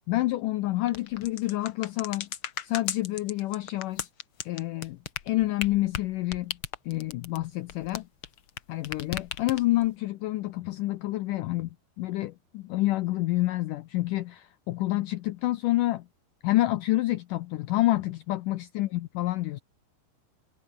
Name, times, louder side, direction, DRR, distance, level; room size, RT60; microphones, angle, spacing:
voice 1, 0.1-2.3 2.6-4.1 4.5-5.0 5.2-6.6 6.9-8.1 8.7-11.7 12.0-16.1 16.4-19.6, left 17 dB, 90° left, 1.8 m, -28 dB
sound 1, 0.9-8.6 8.8-9.9, left 9 dB, 70° left, 1.2 m, -36 dB
omnidirectional pair, 4.7 m